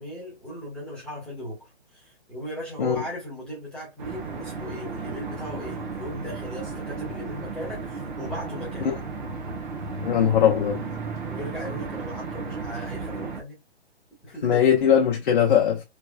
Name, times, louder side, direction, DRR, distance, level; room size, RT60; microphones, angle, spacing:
voice 1, 0.0-8.9 11.3-13.6 14.2-14.6, equal, 5° left, 1.2 m, -37 dB
sound 1, 4.0-13.4, right 4 dB, 45° right, 1.0 m, -34 dB
voice 2, 10.0-10.9 14.4-15.8, left 8 dB, 50° left, 0.8 m, -20 dB
3.3 x 3.0 x 2.3 m
hypercardioid pair, 145°, 33 cm